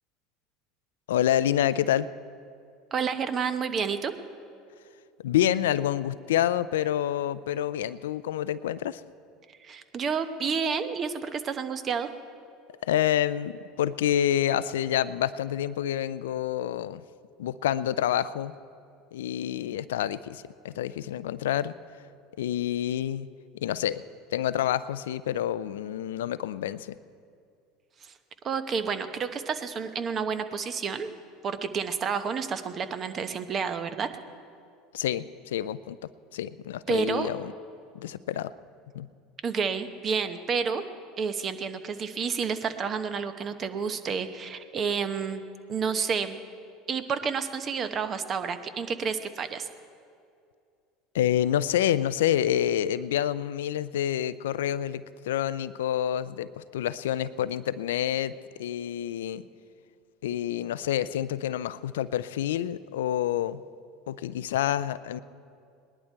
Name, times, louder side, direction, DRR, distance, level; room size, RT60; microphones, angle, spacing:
voice 1, 1.1-2.1 5.2-9.0 12.8-17.0 17.4-18.5 19.1-21.7 22.4-23.3 23.6-24.0 24.3-26.9 34.9-36.0 36.3-37.5 37.9-38.5 38.9-39.1 51.1-58.3 58.6-59.4 60.2-63.6 64.1-65.2, left 11 dB, 85° left, 16 dB, 0.4 m, -28 dB
voice 2, 2.9-4.1 9.6-12.1 28.0-28.1 28.4-31.1 31.4-34.1 36.9-37.3 39.4-40.8 41.2-45.4 45.7-46.4 46.9-49.7, right 6 dB, 40° right, 10 dB, 0.9 m, -30 dB
19.5 x 11.0 x 4.6 m, 2.4 s
hypercardioid pair, 85°, 0 cm